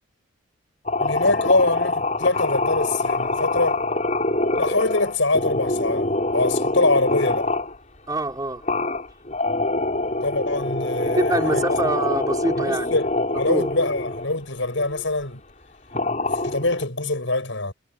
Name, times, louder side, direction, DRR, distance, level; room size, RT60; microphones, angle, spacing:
sound 1, 0.9-7.8 8.6-14.3 14.8-15.1 15.9-16.8, left 2 dB, 35° left, 6.7 m, -25 dB
voice 1, 1.0-3.8 4.6-7.5 10.2-11.6 12.6-13.1 13.4-15.4 16.4-17.7, left 2 dB, 65° left, 6.2 m, -23 dB
voice 2, 8.1-8.6 11.0-13.0 13.5-13.7, right 1 dB, 15° right, 5.0 m, -25 dB
head